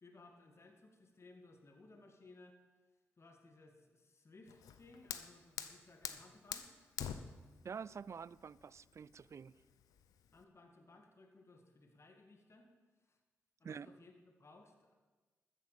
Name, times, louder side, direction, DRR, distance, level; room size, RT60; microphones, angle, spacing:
voice 1, 0.0-2.6 3.2-6.9 10.3-12.7 13.0-13.2 13.6-14.9, left 2 dB, 50° left, 3 dB, 2.2 m, -61 dB
Fire, 4.5-10.4, left 9 dB, 85° left, 0.8 m, -47 dB
voice 2, 7.6-9.5 13.6-13.9, right 6 dB, 55° right, 21 dB, 0.4 m, -47 dB
13.5 x 9.5 x 7.1 m, 1.3 s
supercardioid pair, 40°, 6 cm